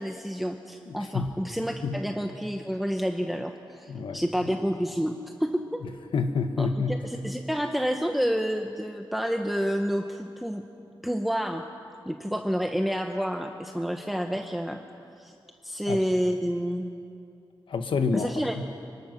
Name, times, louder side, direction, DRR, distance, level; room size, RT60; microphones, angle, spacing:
voice 1, 0.0-5.1 5.4-5.8 6.6-10.6 11.0-11.6 12.1-14.8 15.2-15.3 15.6-16.9 18.1-18.6, equal, ahead, 4 dB, 0.9 m, -29 dB
voice 2, 0.9-1.5 1.8-2.0 3.9-4.5 5.8-7.0 15.9-16.0 17.7-18.3 18.6-18.7, left 4 dB, 80° left, 7 dB, 1.4 m, -29 dB
25.0 x 22.5 x 6.1 m, 2.5 s
wide cardioid pair, 105°, 9 cm